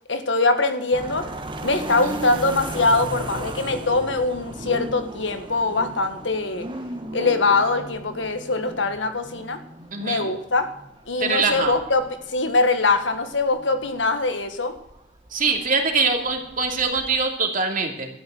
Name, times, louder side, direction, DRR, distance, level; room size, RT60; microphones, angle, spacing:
voice 1, 0.1-1.3 1.6-6.7 7.1-9.6 10.0-10.7 11.1-14.7, left 3 dB, 75° left, 8 dB, 1.7 m, -22 dB
sound 1, 0.9-17.2, right 1 dB, 25° right, 1.4 m, -37 dB
voice 2, 9.9-10.3 11.2-11.7 15.3-18.1, right 4 dB, 45° right, 3 dB, 2.7 m, -23 dB
12.5 x 9.7 x 7.8 m, 0.79 s
head